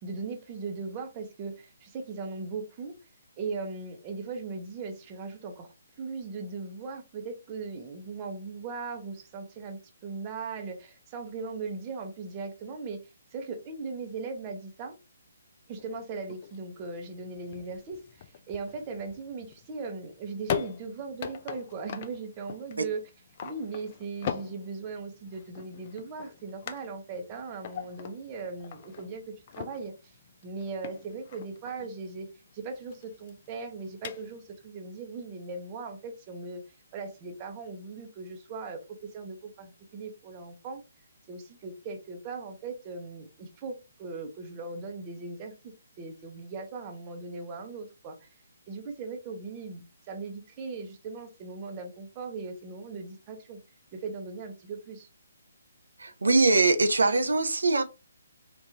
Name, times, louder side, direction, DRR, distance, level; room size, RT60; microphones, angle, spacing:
voice 1, 0.0-2.9 3.4-5.7 6.0-13.0 13.3-14.9 15.7-23.0 23.4-30.2 30.4-32.3 32.5-36.6 36.9-40.8 41.3-45.5 46.0-48.2 48.7-53.6 53.9-55.1, right 4 dB, 25° right, 0.8 m, -38 dB
sound 1, 15.8-34.6, left 8 dB, 40° left, 0.4 m, -41 dB
voice 2, 56.0-57.8, right 3 dB, 85° right, 0.6 m, -22 dB
3.6 x 2.5 x 2.8 m
hypercardioid pair, 150°, 0 cm